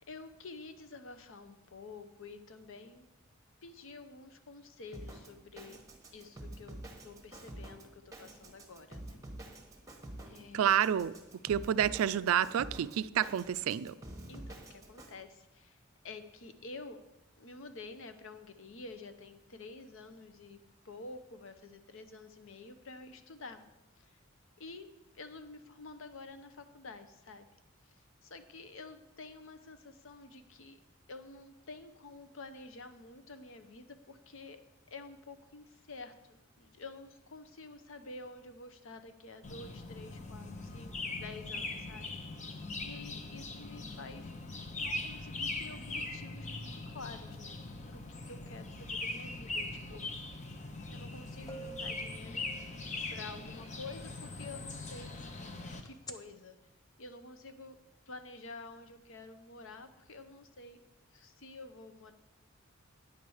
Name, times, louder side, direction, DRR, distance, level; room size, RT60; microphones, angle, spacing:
voice 1, 0.1-3.0 3.6-5.8 6.1-9.2 10.2-10.7 14.3-17.0 17.4-20.6 20.8-23.6 24.0-24.2 24.6-24.9 25.1-27.5 27.9-30.8 31.1-34.6 34.9-42.1 42.8-44.4 44.7-47.6 47.9-50.2 50.9-52.7 53.1-55.2 55.8-56.6 57.0-57.8 58.1-60.8 61.1-62.1, left 3 dB, 65° left, 9 dB, 0.8 m, -49 dB
Drum kit, 4.9-15.1, right 1 dB, 15° right, 1.1 m, -48 dB
voice 2, 10.5-13.9, right 9 dB, 85° right, 16 dB, 0.3 m, -29 dB
sound 1, 39.4-55.8, left 2 dB, 35° left, 0.8 m, -41 dB
sound 2, 51.0-51.1 51.5-53.2 55.9-56.1, right 1 dB, 20° left, 0.5 m, -47 dB
9.4 x 4.7 x 7.0 m, 0.94 s
head